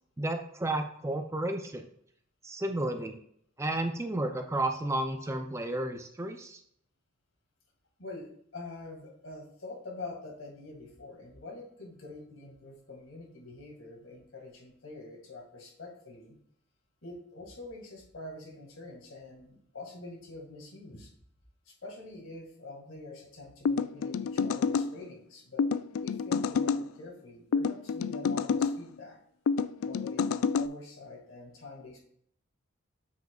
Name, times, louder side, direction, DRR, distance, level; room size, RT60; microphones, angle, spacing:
voice 1, 0.2-1.8 2.4-3.2 3.6-6.6, right 1 dB, 15° right, 5 dB, 0.4 m, -32 dB
voice 2, 8.0-16.4 17.0-21.1 21.7-25.7 26.0-29.2 29.8-32.0, left 2 dB, 75° left, 1 dB, 2.0 m, -46 dB
sound 1, 23.6-24.9 25.6-26.8 27.5-28.8 29.5-30.7, left 5 dB, 90° left, 0.3 m, -28 dB
7.4 x 6.2 x 2.4 m, 0.67 s
head